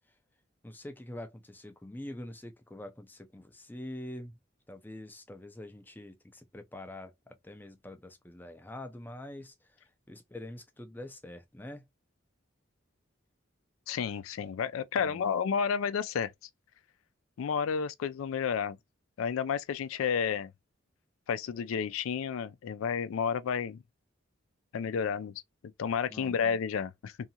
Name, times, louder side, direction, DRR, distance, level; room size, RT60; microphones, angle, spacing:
voice 1, 0.6-4.4 4.7-11.8 15.0-15.3 26.1-26.4, left 1 dB, 10° left, 0.4 m, -45 dB
voice 2, 13.9-16.3 17.4-18.8 19.2-20.5 21.3-23.8 24.7-25.3 25.8-27.1, left 6 dB, 90° left, 0.3 m, -31 dB
2.7 x 2.4 x 2.7 m
head